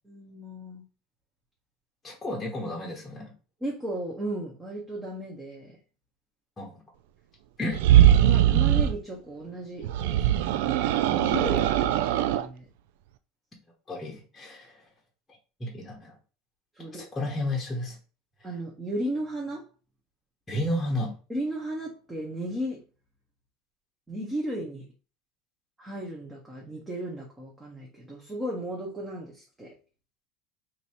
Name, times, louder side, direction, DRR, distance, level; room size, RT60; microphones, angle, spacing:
voice 1, 0.0-0.8 3.6-5.8 8.2-12.7 16.7-17.0 18.4-19.6 21.3-22.8 24.1-24.8 25.8-29.7, right 1 dB, 15° right, -3 dB, 1.1 m, -35 dB
voice 2, 2.0-3.3 6.6-6.8 7.6-7.8 13.9-14.8 15.6-16.1 16.9-18.0 20.5-21.1, left 1 dB, 15° left, -1 dB, 1.0 m, -32 dB
sound 1, 7.7-9.0 9.8-12.5, right 12 dB, 75° right, 0.3 m, -21 dB
3.0 x 2.7 x 4.3 m, 0.34 s
supercardioid pair, 115°, 0 cm